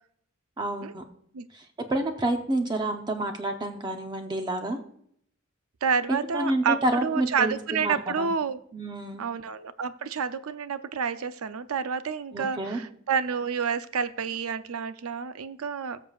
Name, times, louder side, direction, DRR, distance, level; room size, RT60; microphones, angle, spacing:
voice 1, 0.6-1.0 1.5-1.6 1.9-4.8 6.1-8.3 8.7-9.2 12.3-12.8, right 1 dB, 20° right, 4 dB, 0.7 m, -29 dB
voice 2, 5.8-8.6 9.2-16.0, right 6 dB, 80° right, 12 dB, 0.5 m, -29 dB
19.5 x 6.7 x 2.4 m, 0.68 s
head